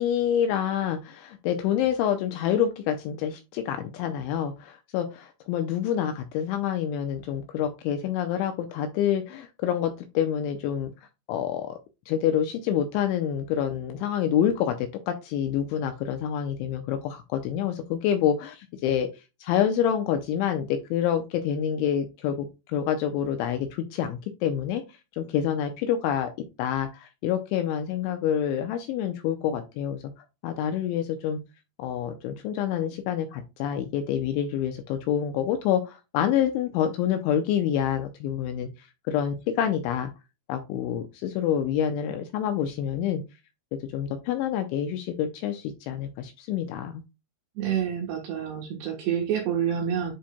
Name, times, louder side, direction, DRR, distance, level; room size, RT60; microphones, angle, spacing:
voice 1, 0.0-10.9 11.3-11.7 12.1-19.1 19.4-22.5 22.7-24.8 25.2-26.3 26.6-30.0 30.4-31.4 31.8-38.7 39.1-40.1 40.5-43.2 43.9-47.0, left 9 dB, 80° left, 2.8 m, -27 dB
voice 2, 47.6-50.1, right 9 dB, 70° right, 2.7 m, -28 dB
10.5 x 4.3 x 2.2 m
omnidirectional pair, 6.0 m